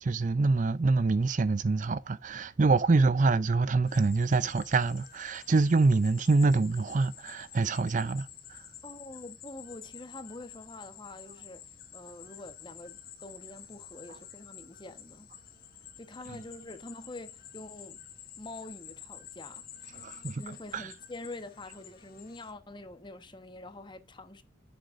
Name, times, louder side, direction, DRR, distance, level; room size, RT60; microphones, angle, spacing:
voice 1, 0.0-8.7 20.0-20.4 20.7-20.9, right 3 dB, 40° right, 0.4 m, -26 dB
sound 1, 3.9-22.5, left 10 dB, 50° left, 2.0 m, -50 dB
voice 2, 8.8-11.6 11.9-15.3 16.0-18.0 18.4-20.0 20.4-24.4, left 2 dB, 25° left, 1.1 m, -45 dB
10.5 x 7.8 x 2.5 m
head